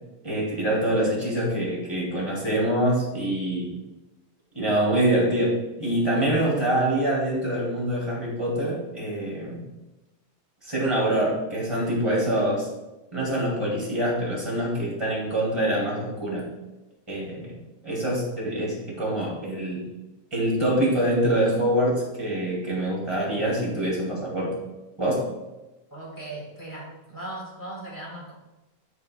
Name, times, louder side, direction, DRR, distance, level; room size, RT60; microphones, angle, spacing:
voice 1, 0.2-3.7 4.5-9.6 10.6-12.7 13.1-16.4 17.1-17.5 17.8-19.9 20.3-24.5 25.0-25.3, right 1 dB, 10° right, -5 dB, 2.2 m, -25 dB
voice 2, 25.9-28.3, right 1 dB, 5° left, -5 dB, 2.0 m, -38 dB
12.5 x 4.6 x 2.3 m, 1.0 s
omnidirectional pair, 3.3 m